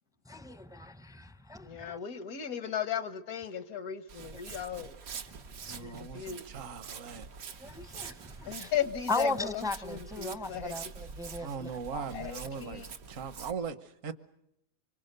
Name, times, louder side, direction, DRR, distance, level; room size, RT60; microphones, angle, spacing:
voice 1, 0.3-2.0 4.3-4.6 7.6-8.7 9.1-12.3, left 2 dB, 5° right, 0.5 m, -37 dB
voice 2, 1.6-5.0 5.8-6.5 8.5-10.7 12.1-12.9, left 9 dB, 85° left, 1.6 m, -36 dB
Walk footsteps, 4.1-13.5, right 6 dB, 90° right, 1.6 m, -45 dB
voice 3, 5.7-7.3 11.4-13.8 14.0-14.1, right 6 dB, 65° right, 1.5 m, -39 dB
25.5 x 24.5 x 6.7 m
omnidirectional pair, 1.5 m